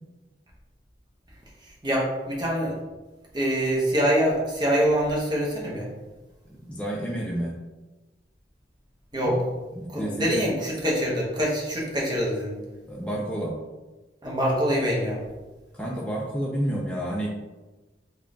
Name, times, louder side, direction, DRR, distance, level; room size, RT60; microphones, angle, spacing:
voice 1, 1.8-2.8 3.3-5.9 9.1-9.4 9.9-12.6 14.2-15.2, equal, 25° right, -4 dB, 0.9 m, -24 dB
voice 2, 6.5-7.6 9.2-9.3 9.8-10.6 12.9-13.6 15.7-17.3, right 1 dB, 5° left, -4 dB, 0.4 m, -30 dB
3.6 x 2.3 x 3.7 m, 1.2 s
head